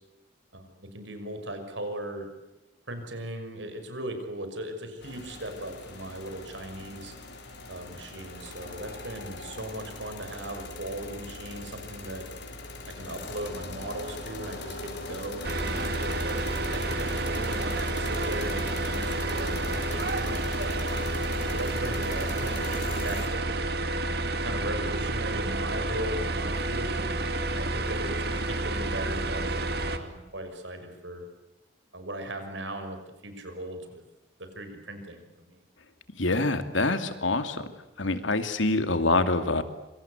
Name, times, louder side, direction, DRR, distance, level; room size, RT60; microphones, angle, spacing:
voice 1, 0.5-2.3 2.9-7.1 7.7-12.2 13.0-16.5 16.7-20.6 21.5-23.8 24.4-27.0 27.5-31.3 31.9-34.0 34.4-35.6, right 1 dB, 75° right, 7 dB, 6.1 m, -38 dB
sound 1, 5.0-23.3, left 2 dB, 65° left, 5.7 m, -40 dB
sound 2, 15.4-30.0, right 2 dB, 55° right, 2.5 m, -30 dB
voice 2, 36.2-37.6 38.0-39.6, left 2 dB, 85° left, 9 dB, 2.5 m, -25 dB
27.0 x 26.0 x 8.2 m, 0.97 s
head